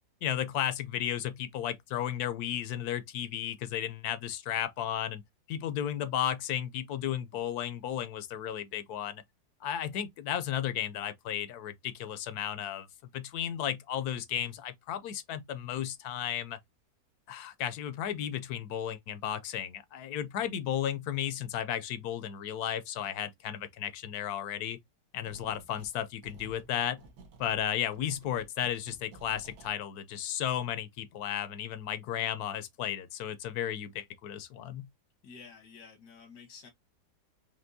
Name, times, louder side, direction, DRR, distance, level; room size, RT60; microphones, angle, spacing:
voice 1, 0.2-5.2 5.5-9.2 9.6-12.9 13.1-16.6 17.3-24.8 25.1-27.0 27.4-34.9, left 10 dB, 75° left, 1.1 m, -34 dB
sound 1, 25.3-26.0 26.2-29.7, right 3 dB, 70° right, 1.5 m, -53 dB
voice 2, 35.2-36.7, left 5 dB, 90° left, 1.7 m, -50 dB
5.2 x 2.9 x 2.6 m
omnidirectional pair, 1.7 m